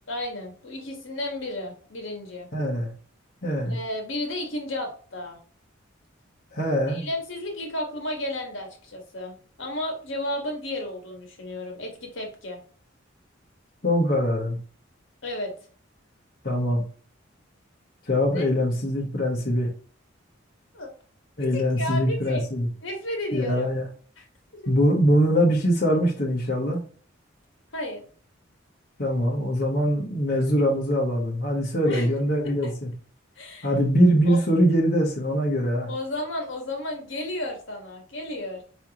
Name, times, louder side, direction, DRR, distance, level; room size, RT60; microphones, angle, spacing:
voice 1, 0.1-2.5 3.6-5.4 6.9-12.6 15.2-15.5 18.3-18.4 20.7-20.9 21.4-22.4 22.8-23.7 24.2-24.3 24.6-24.7 27.7-28.1 31.8-32.1 32.4-32.7 33.4-33.7 34.3-34.4 35.9-38.6, left 1 dB, 70° left, 2 dB, 1.5 m, -33 dB
voice 2, 2.5-2.9 3.4-3.8 6.5-7.1 13.8-14.6 16.4-16.8 18.1-19.7 21.4-22.7 23.3-23.8 24.7-26.8 29.0-32.9 33.6-35.9, equal, 50° left, -3 dB, 1.1 m, -23 dB
4.9 x 3.2 x 2.9 m, 0.42 s
head